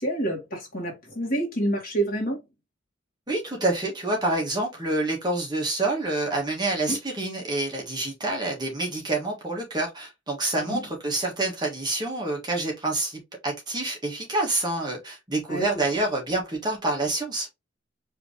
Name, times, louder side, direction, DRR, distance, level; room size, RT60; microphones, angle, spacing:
voice 1, 0.0-2.4 6.9-7.0 10.6-10.8 15.5-15.8, right 1 dB, 45° left, 1.9 m, -28 dB
voice 2, 3.3-17.5, right 2 dB, 20° right, 1.6 m, -27 dB
5.0 x 3.2 x 3.2 m
head